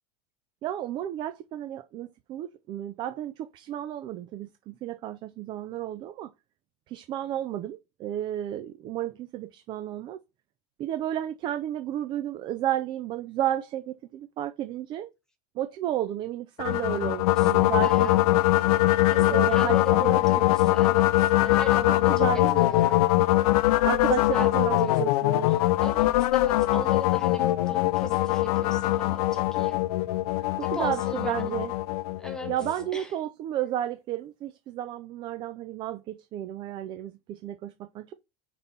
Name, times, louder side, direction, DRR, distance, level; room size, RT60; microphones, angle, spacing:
voice 1, 0.6-6.3 6.9-10.2 10.8-15.1 15.6-18.1 19.1-20.4 22.1-22.7 23.8-25.6 30.3-30.4 30.7-31.7 32.5-38.1, right 12 dB, 25° right, 0.4 m, -32 dB
sound 1, 16.6-32.8, left 16 dB, 75° left, 0.5 m, -22 dB
voice 2, 17.3-18.3 19.1-23.0 24.2-24.5 24.8-25.0 25.8-29.8 30.6-31.5 32.2-32.5 32.9-33.1, left 1 dB, 5° left, 1.0 m, -38 dB
5.4 x 4.0 x 5.7 m
supercardioid pair, 170°, 19 cm